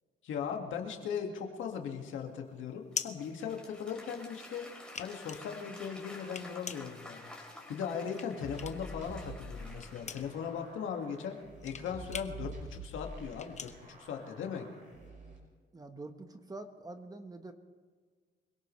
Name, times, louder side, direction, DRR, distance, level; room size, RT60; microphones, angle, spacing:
voice 1, 0.2-4.7 5.0-7.3 7.7-11.4 11.6-14.7, left 7 dB, 80° left, 3 dB, 2.1 m, -38 dB
sound 1, 1.6-4.2 4.6-9.0 9.3-14.8, left 6 dB, 35° left, 1.0 m, -44 dB
Applause / Crowd, 2.9-10.7, left 2 dB, 5° left, 4.0 m, -51 dB
sound 2, 8.4-15.4, right 2 dB, 40° right, 5.8 m, -47 dB
voice 2, 15.7-17.5, right 2 dB, 20° right, 7 dB, 1.4 m, -46 dB
25.5 x 17.0 x 3.3 m, 1.5 s
cardioid pair, 90°, 20 cm